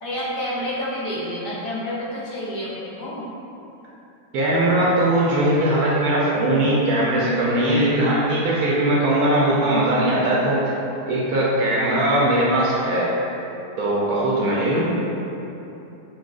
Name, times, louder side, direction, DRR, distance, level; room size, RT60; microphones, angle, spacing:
voice 1, 0.0-3.3, equal, 70° left, -7 dB, 1.4 m, -29 dB
voice 2, 4.3-10.7 11.1-13.1 13.8-15.0, right 1 dB, 70° right, -6 dB, 1.0 m, -20 dB
5.9 x 2.2 x 2.4 m, 2.9 s
omnidirectional pair, 1.9 m